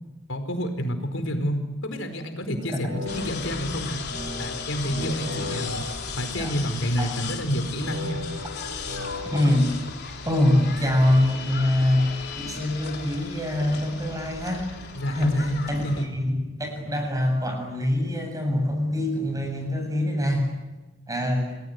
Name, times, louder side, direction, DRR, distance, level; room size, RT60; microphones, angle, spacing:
voice 1, 0.3-4.0 4.4-5.8 6.2-8.2 14.9-16.1, equal, 75° left, 7 dB, 4.8 m, -29 dB
sound 1, 2.6-6.9 7.8-9.5, left 2 dB, 90° right, 5.7 m, -37 dB
sound 2, 3.1-16.1, left 5 dB, 55° left, 3.7 m, -36 dB
voice 2, 9.3-9.7 10.2-14.7 15.1-20.5 21.1-21.5, left 1 dB, 20° right, 3 dB, 7.6 m, -24 dB
28.5 x 21.5 x 9.7 m, 1.1 s
head